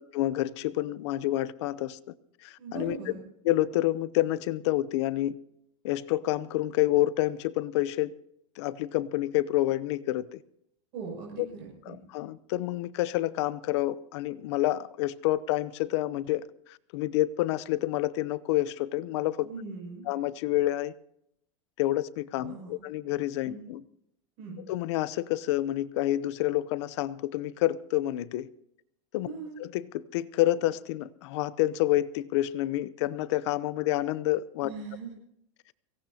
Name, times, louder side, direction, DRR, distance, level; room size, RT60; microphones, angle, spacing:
voice 1, 0.0-2.1 2.4-3.0 3.4-5.4 5.8-8.1 8.6-10.4 11.4-11.5 11.9-19.5 20.1-20.9 21.8-23.8 24.7-28.5 29.1-29.3 29.6-34.7, left 15 dB, 65° left, 0.7 m, -28 dB
voice 2, 2.6-3.2 10.9-12.0 19.4-20.1 22.4-22.7 23.4-23.6 24.4-24.6 29.2-29.6 34.6-35.1, right 5 dB, 55° right, 6.6 m, -40 dB
23.5 x 17.5 x 2.8 m
supercardioid pair, 160°, 16 cm